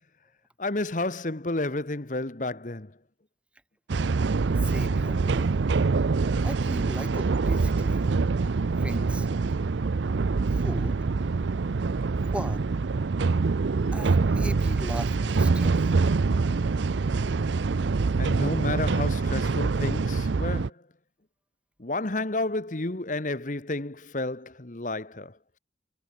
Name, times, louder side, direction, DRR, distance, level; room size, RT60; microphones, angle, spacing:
voice 1, 0.6-2.9 18.2-20.8 21.8-25.4, left 2 dB, 45° left, 1.3 m, -31 dB
sound 1, 3.9-20.7, right 4 dB, 85° right, 0.5 m, -25 dB
voice 2, 4.6-5.5 6.4-8.1 8.8-9.3 10.5-11.0 12.3-12.7 13.9-16.0, right 1 dB, 5° right, 0.8 m, -38 dB
head